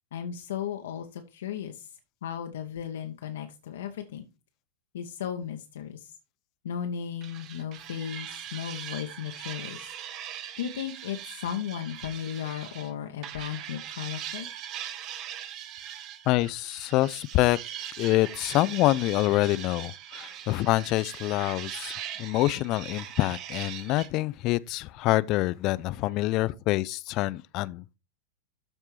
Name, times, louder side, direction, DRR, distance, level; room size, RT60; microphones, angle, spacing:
voice 1, 0.1-1.9 2.2-4.2 4.9-6.1 6.6-9.9 10.6-14.5, left 9 dB, 60° left, 0.8 m, -35 dB
sound 1, 7.2-12.9 13.2-24.1, right 10 dB, 35° right, 0.9 m, -41 dB
voice 2, 16.3-17.6 18.0-27.9, left 17 dB, 40° left, 0.3 m, -26 dB
13.0 x 4.4 x 3.1 m
figure-of-eight pair, 90°, 0 cm